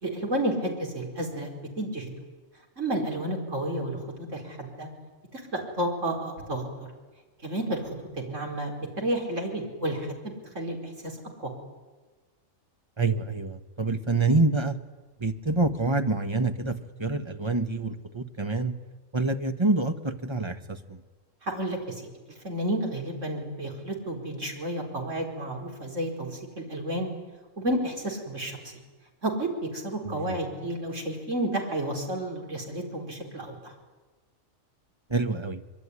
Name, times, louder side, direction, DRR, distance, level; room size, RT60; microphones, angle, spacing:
voice 1, 0.0-1.5 1.8-2.1 2.8-4.9 5.3-6.6 7.4-10.8 11.0-11.1 21.4-22.0 22.4-27.1 27.6-28.7 29.2-33.7, right 1 dB, 65° right, 1 dB, 5.0 m, -31 dB
voice 2, 13.0-14.8 15.2-18.7 19.1-21.0 30.0-30.3 35.1-35.6, right 3 dB, 20° right, 8 dB, 1.4 m, -27 dB
25.5 x 23.0 x 9.9 m, 1.3 s
omnidirectional pair, 1.4 m